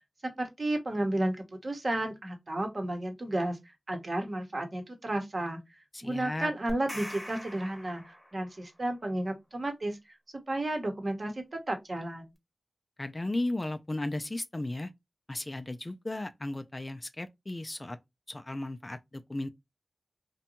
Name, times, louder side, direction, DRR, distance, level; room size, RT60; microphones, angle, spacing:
voice 1, 0.4-5.6 6.0-10.0 10.5-12.3, right 1 dB, 55° right, 0.9 m, -32 dB
voice 2, 5.9-6.5 13.0-14.9 15.3-18.0 18.3-19.5, left 2 dB, 35° left, 0.3 m, -35 dB
sound 1, 6.7-8.7, equal, 5° left, 0.8 m, -43 dB
2.6 x 2.2 x 2.8 m
cardioid pair, 50°, 0 cm